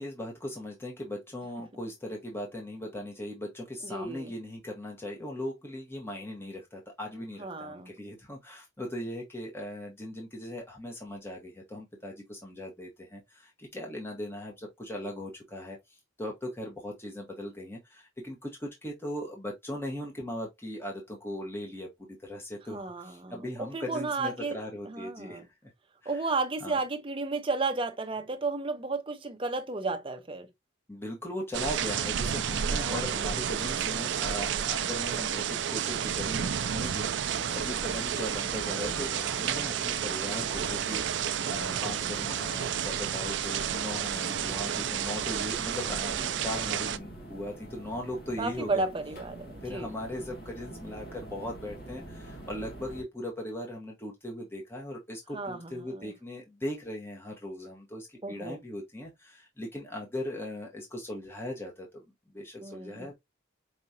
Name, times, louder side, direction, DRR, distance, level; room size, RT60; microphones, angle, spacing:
voice 1, 0.0-25.7 26.0-26.2 26.6-26.8 30.9-48.8 49.6-62.0 62.3-63.2, left 1 dB, 10° left, 1.2 m, -39 dB
voice 2, 3.8-4.3 7.4-7.9 22.7-24.6 24.9-25.4 26.1-30.5 32.7-33.2 48.4-49.9 55.3-56.1 58.2-58.6 62.6-63.1, right 3 dB, 25° right, 0.6 m, -33 dB
sound 1, 31.5-47.0, right 8 dB, 65° right, 0.4 m, -31 dB
sound 2, 37.3-53.0, right 1 dB, 50° left, 1.4 m, -45 dB
4.8 x 2.9 x 2.7 m
head